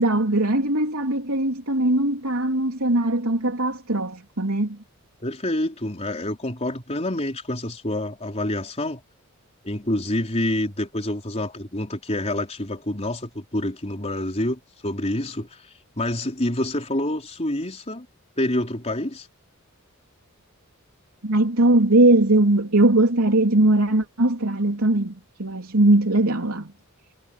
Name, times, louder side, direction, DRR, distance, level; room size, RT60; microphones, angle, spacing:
voice 1, 0.0-4.8 21.2-26.7, right 2 dB, 75° right, 3.3 m, -20 dB
voice 2, 5.2-9.0 9.6-18.1 18.4-19.3, left 1 dB, 30° left, 4.0 m, -27 dB
head